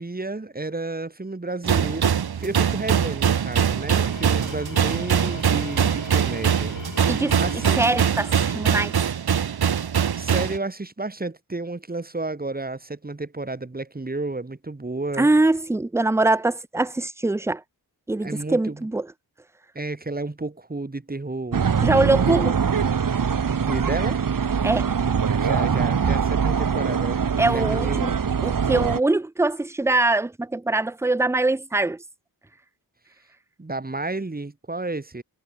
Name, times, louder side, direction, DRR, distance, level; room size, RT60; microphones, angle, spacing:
voice 1, 0.0-7.9 10.2-15.3 18.2-18.9 19.7-21.7 23.6-24.3 25.4-27.2 27.5-28.1 33.6-35.2, right 2 dB, 25° right, 5.6 m, -31 dB
sound 1, 1.6-10.6, right 8 dB, 70° right, 1.5 m, -22 dB
Tools, 3.8-9.2, left 5 dB, 55° left, 4.8 m, -41 dB
voice 2, 7.1-7.4 7.8-8.9 15.2-17.6 18.1-19.1 21.8-22.6 24.6-24.9 27.4-28.1 28.4-32.0, right 2 dB, 5° right, 0.5 m, -22 dB
sound 2, 21.5-29.0, right 6 dB, 55° right, 1.9 m, -23 dB
wide cardioid pair, 145°, 39 cm